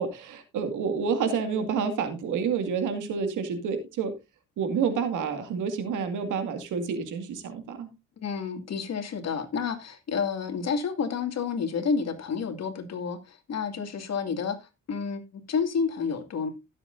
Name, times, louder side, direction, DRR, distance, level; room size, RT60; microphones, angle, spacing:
voice 1, 0.0-4.1 4.6-7.9, right 6 dB, 80° right, 2.3 m, -29 dB
voice 2, 8.2-16.5, left 5 dB, 60° left, 2.4 m, -30 dB
16.5 x 7.8 x 2.6 m
cardioid pair, 90°, 30 cm